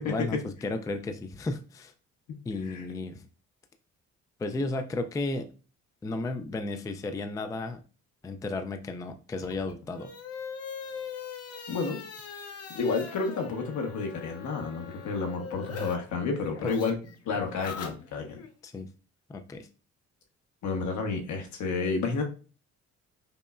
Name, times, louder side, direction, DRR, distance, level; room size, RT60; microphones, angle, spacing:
voice 1, 0.1-1.9 2.5-3.3 4.4-5.5 6.0-7.8 8.2-10.1 16.6-16.7 17.4-17.5 18.6-18.9 19.3-19.7, left 2 dB, 10° left, 7 dB, 0.3 m, -33 dB
sound 1, 9.3-15.9 16.2-18.5, left 6 dB, 55° left, 0.7 m, -41 dB
voice 2, 11.7-12.0 12.7-17.0 17.2-18.4 20.6-22.2, left 4 dB, 75° left, 2 dB, 1.1 m, -30 dB
5.3 x 2.1 x 2.4 m, 0.36 s
cardioid pair, 90°, 30 cm